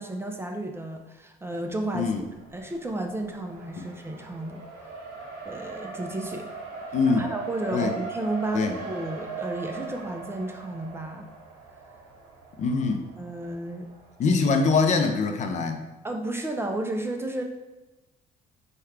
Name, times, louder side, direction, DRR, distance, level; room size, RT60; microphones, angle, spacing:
voice 1, 0.0-2.1 2.5-4.6 5.5-6.5 7.2-11.3 13.2-13.9 16.0-17.4, right 2 dB, 15° right, 3 dB, 0.4 m, -32 dB
Race car auto racing, 1.7-14.3, right 4 dB, 70° right, 1.1 m, -40 dB
voice 2, 6.9-7.3 7.7-7.9 8.5-8.8 12.6-13.1 14.2-15.9, left 4 dB, 45° left, 5 dB, 0.5 m, -24 dB
4.4 x 2.2 x 3.5 m, 1.1 s
cardioid pair, 110°, 17 cm